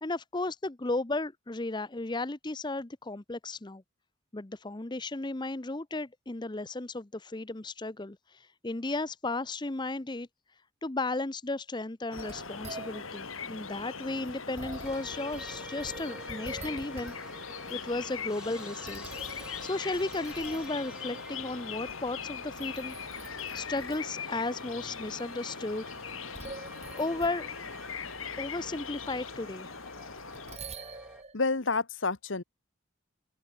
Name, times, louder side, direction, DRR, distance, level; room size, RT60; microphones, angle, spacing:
voice 1, 0.0-3.8 4.3-10.3 10.8-17.1 17.7-23.0 23.5-26.0 26.9-27.5 28.4-29.7, left 2 dB, 20° left, 0.7 m, -34 dB
sound 1, 12.1-30.6, left 5 dB, 90° left, 4.5 m, -41 dB
sound 2, 12.2-17.4 17.7-18.2 18.6-20.8 21.7-22.2 22.5-24.1 24.6-24.7 26.1-27.5 30.2-31.3, right 3 dB, 30° right, 3.5 m, -47 dB
sound 3, 14.8-31.2, right 1 dB, 5° right, 3.3 m, -50 dB
voice 2, 31.3-32.4, left 4 dB, 65° left, 1.3 m, -29 dB
open air
head